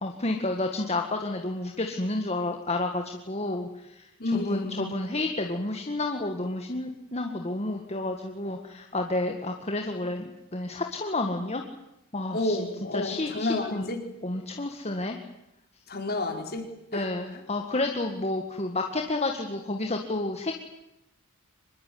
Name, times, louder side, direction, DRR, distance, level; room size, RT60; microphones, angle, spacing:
voice 1, 0.0-11.6 12.1-12.6 12.9-13.9 14.2-15.2 16.9-20.6, left 2 dB, 30° left, 3 dB, 1.9 m, -30 dB
voice 2, 4.2-4.9 12.3-14.0 15.9-17.1, left 2 dB, 45° left, 4 dB, 4.7 m, -30 dB
25.5 x 21.5 x 9.5 m, 0.87 s
head